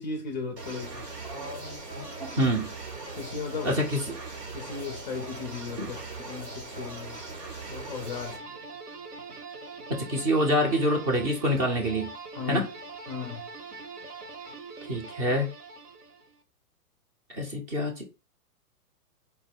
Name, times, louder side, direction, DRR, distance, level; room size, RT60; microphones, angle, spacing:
voice 1, 0.0-1.1 3.2-3.8 4.5-7.2 7.7-8.4 12.3-12.7 13.1-13.4, left 5 dB, 30° left, 0.4 m, -36 dB
sound 1, 0.6-8.4, right 3 dB, 90° right, 1.4 m, -40 dB
voice 2, 1.2-2.7 3.6-4.0 5.8-5.9 9.9-12.1 12.5-12.6 14.8-15.5 17.3-18.0, equal, 20° right, 0.5 m, -27 dB
sound 2, 8.1-16.4, right 4 dB, 70° right, 1.1 m, -43 dB
4.2 x 2.1 x 3.3 m
hypercardioid pair, 120°, 47 cm